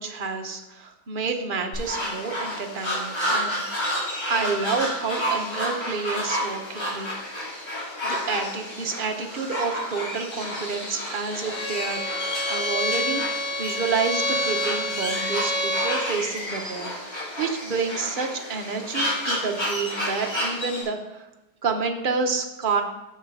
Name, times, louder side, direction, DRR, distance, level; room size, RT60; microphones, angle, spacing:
voice 1, 0.0-3.6 4.3-7.1 8.0-12.0 12.4-13.2 13.6-21.3 21.6-22.8, right 4 dB, 40° right, 3 dB, 0.9 m, -29 dB
sound 1, 1.7-20.8, equal, 65° left, 3.6 m, -30 dB
Bowed string instrument, 11.5-16.0, left 1 dB, 5° left, 1.6 m, -28 dB
6.6 x 6.4 x 5.4 m, 0.98 s
omnidirectional pair, 1.7 m